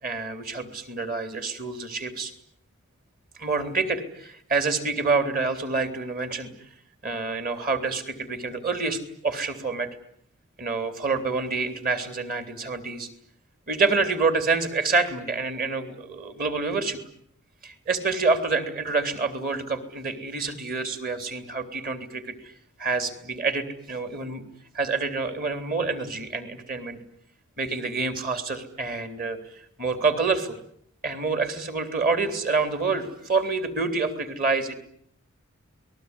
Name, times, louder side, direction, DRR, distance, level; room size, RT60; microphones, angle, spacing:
voice 1, 0.0-2.3 3.4-6.5 7.0-9.9 10.6-13.1 13.7-17.0 17.6-22.5 22.8-24.4 24.7-27.0 27.6-29.4 29.8-30.6 31.0-34.7, right 4 dB, 45° right, 9 dB, 3.5 m, -27 dB
29.0 x 20.0 x 9.8 m, 0.68 s
head